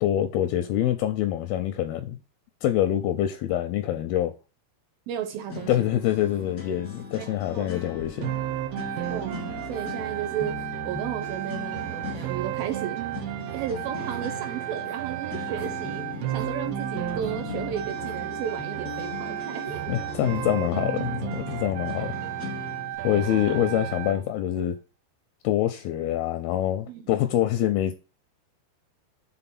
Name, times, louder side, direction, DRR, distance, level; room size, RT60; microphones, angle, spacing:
voice 1, 0.0-2.2 2.6-4.3 5.7-8.3 19.9-22.2 23.0-24.8 25.4-27.9, left 12 dB, 85° left, 2.2 m, -25 dB
voice 2, 5.1-5.9 7.2-7.7 9.1-13.0 13.5-19.9 23.1-23.4 26.9-27.1, right 9 dB, 75° right, 2.3 m, -34 dB
sound 1, 5.5-22.9, left 4 dB, 45° left, 1.0 m, -39 dB
sound 2, 6.3-6.5 6.9-7.1 7.7-8.3 8.8-9.0 9.7-9.9 10.5-10.7 11.4-11.5 12.1-12.3 12.7-12.9 13.4-13.7 14.1-14.3 14.8-15.0 15.6-15.9 16.4-16.6 17.2-17.4 18.0-18.2 18.9-19.1 19.6-19.9 20.3-20.5, right 1 dB, 35° right, 1.2 m, -50 dB
sound 3, 8.2-24.2, right 15 dB, 90° right, 2.1 m, -33 dB
6.9 x 3.9 x 5.8 m
omnidirectional pair, 4.8 m